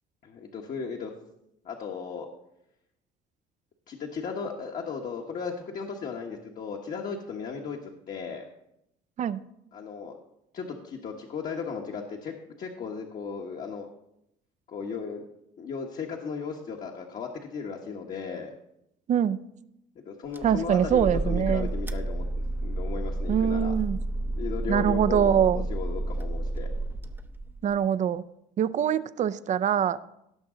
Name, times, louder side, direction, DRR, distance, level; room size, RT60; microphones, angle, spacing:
voice 1, 0.2-1.1 1.6-2.3 3.9-8.5 9.7-10.1 10.5-13.9 14.7-15.2 15.6-18.5 19.9-22.3 22.6-23.7 24.3-25.4 25.7-26.7, left 5 dB, 50° left, 0 dB, 1.3 m, -36 dB
voice 2, 19.1-19.4 20.4-21.7 23.3-24.0 24.7-25.6 27.6-28.2 28.6-30.0, right 9 dB, 45° right, 16 dB, 0.5 m, -24 dB
sound 1, 20.3-27.7, right 1 dB, 10° right, 0.7 m, -31 dB
17.5 x 6.0 x 3.8 m, 0.82 s
cardioid pair, 105°, 17 cm